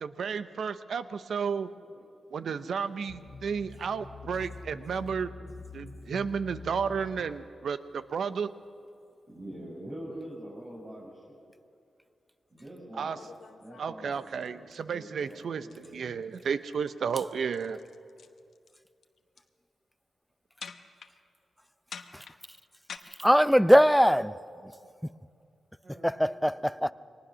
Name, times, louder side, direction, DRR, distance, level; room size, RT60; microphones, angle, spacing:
voice 1, 0.0-1.7 2.3-5.3 5.7-8.5 13.0-13.2 13.8-15.7 15.9-17.8, right 6 dB, 75° right, 0.8 m, -32 dB
voice 2, 1.7-2.0 9.3-11.4 12.5-13.3 13.6-16.2 25.8-26.9, right 1 dB, 40° right, 6.4 m, -45 dB
sound 1, 3.1-7.3, left 3 dB, 45° left, 1.5 m, -45 dB
sound 2, 13.1-14.8 15.2-15.4 15.7-15.9 16.2-16.5 16.8-18.8 19.0-19.5 20.6-21.1 21.9-23.0, left 6 dB, 75° left, 1.0 m, -46 dB
voice 3, 23.2-24.3 26.0-26.9, equal, ahead, 0.6 m, -21 dB
22.5 x 19.0 x 6.3 m
cardioid pair, 50°, 0 cm